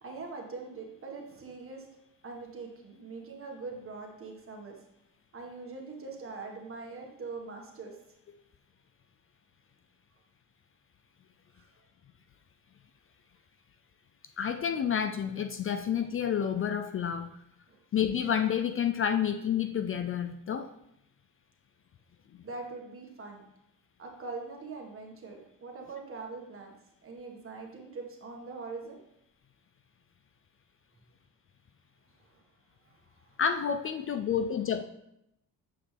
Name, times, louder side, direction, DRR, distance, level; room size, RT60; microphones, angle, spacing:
voice 1, 0.0-1.9 2.2-4.8 5.3-7.9 11.5-11.7 17.7-17.8 22.4-23.4 24.0-26.7 27.0-29.0 32.2-32.4 32.9-33.4, right 4 dB, 40° right, 1 dB, 1.7 m, -42 dB
voice 2, 14.4-17.3 17.9-20.7 22.3-22.4 33.4-34.8, left 8 dB, 40° left, 8 dB, 0.4 m, -29 dB
8.3 x 5.0 x 3.4 m, 0.80 s
cardioid pair, 90°, 34 cm